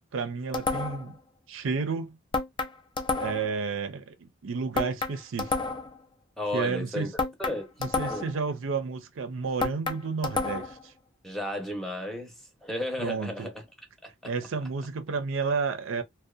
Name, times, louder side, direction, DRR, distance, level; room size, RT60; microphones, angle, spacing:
voice 1, 0.1-1.2 1.5-2.2 3.1-5.5 6.5-7.1 7.8-10.9 13.0-13.5 14.2-16.0, right 5 dB, 80° right, 0.5 m, -31 dB
sound 1, 0.5-1.1 2.3-3.6 4.8-6.0 7.2-8.4 9.6-10.8, left 3 dB, 25° left, 0.4 m, -30 dB
voice 2, 6.4-7.1 7.4-8.3 11.2-13.6 14.0-14.3, left 1 dB, ahead, 0.7 m, -34 dB
2.6 x 2.1 x 2.3 m
head